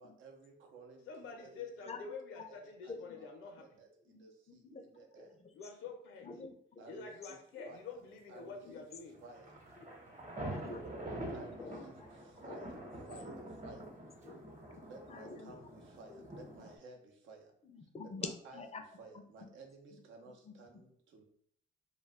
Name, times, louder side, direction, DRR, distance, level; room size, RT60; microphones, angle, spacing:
voice 1, 0.0-1.9 2.5-2.6 2.8-5.4 6.8-8.0 8.3-8.8 9.2-9.6 11.3-12.8 13.1-13.4 13.6-13.9 14.8-17.5 18.2-21.2, right 3 dB, 80° right, 2 dB, 0.7 m, -55 dB
voice 2, 1.1-3.8 5.5-6.3 6.9-9.2, left 5 dB, 85° left, 3 dB, 0.7 m, -47 dB
voice 3, 2.9-3.3 4.1-4.9 5.2-5.5 6.2-6.8 7.5-7.6 8.6-8.8 9.8-9.9 10.5-10.8 11.6-12.1 12.4-12.7 13.5-13.6 14.2-14.4 14.7-14.8 15.1-15.6 16.1-16.3 17.6-18.8 19.1-19.2 19.9-20.0 20.4-20.6, left 4 dB, 30° left, 7 dB, 0.4 m, -47 dB
sound 1, 9.1-16.8, right 1 dB, 40° right, 0.9 m, -46 dB
2.3 x 2.3 x 3.4 m, 0.66 s
cardioid pair, 90°, 20 cm